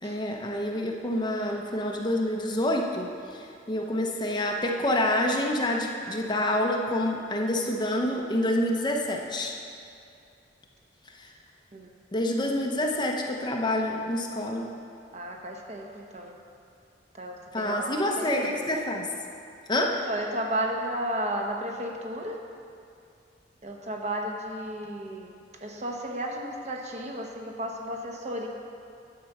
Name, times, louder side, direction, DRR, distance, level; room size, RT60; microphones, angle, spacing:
voice 1, 0.0-9.6 11.1-11.3 12.1-14.7 17.5-19.1 19.7-20.0, left 1 dB, 25° left, 1 dB, 0.8 m, -27 dB
voice 2, 15.1-16.3 17.2-17.9 18.2-18.5 20.0-22.4 23.6-25.3 25.6-28.5, right 1 dB, 40° right, 1 dB, 1.0 m, -33 dB
10.5 x 5.2 x 7.2 m, 2.5 s
head